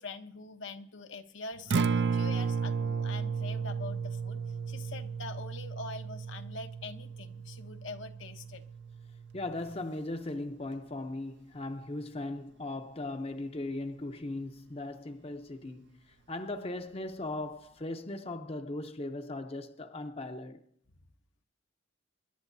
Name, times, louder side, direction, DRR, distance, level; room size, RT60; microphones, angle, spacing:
voice 1, 0.0-8.6, left 3 dB, 75° left, 1.0 m, -44 dB
Acoustic guitar, 1.6-9.8, right 5 dB, 60° right, 0.6 m, -34 dB
voice 2, 9.3-20.6, left 2 dB, 30° left, 0.7 m, -38 dB
25.5 x 11.5 x 2.7 m
head